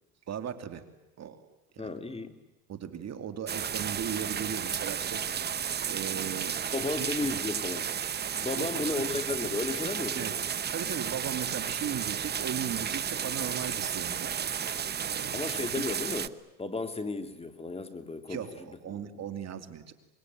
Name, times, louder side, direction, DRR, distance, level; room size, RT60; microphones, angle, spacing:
voice 1, 0.3-0.8 1.2-1.4 1.7-1.9 2.7-5.2 5.9-7.1 8.6-9.2 10.1-10.4 10.7-14.3 15.1-15.4 18.3-19.9, right 8 dB, 45° right, 9 dB, 2.7 m, -37 dB
voice 2, 1.8-2.4 6.7-7.9 8.4-10.3 15.3-19.2, left 3 dB, 15° left, 8 dB, 2.6 m, -34 dB
sound 1, 3.5-16.3, right 8 dB, 25° right, 0.8 m, -33 dB
25.5 x 22.0 x 9.3 m, 1.0 s
supercardioid pair, 95°, 38 cm